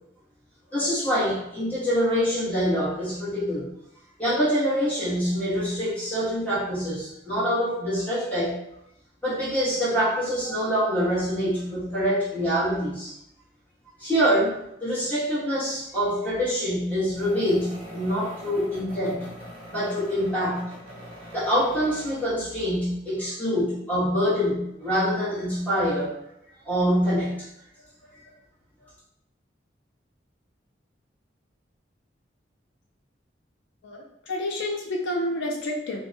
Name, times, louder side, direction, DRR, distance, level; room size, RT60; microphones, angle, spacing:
voice 1, 0.7-3.7 4.2-8.6 9.2-13.1 14.0-19.3 19.7-20.7 21.3-26.1 26.6-27.4, equal, 10° left, -12 dB, 1.2 m, -25 dB
sound 1, 15.7-16.1 17.1-22.4, equal, 30° right, 0.8 m, -43 dB
voice 2, 33.8-36.1, left 1 dB, 80° left, 0 dB, 0.4 m, -29 dB
2.6 x 2.1 x 2.6 m, 0.78 s
head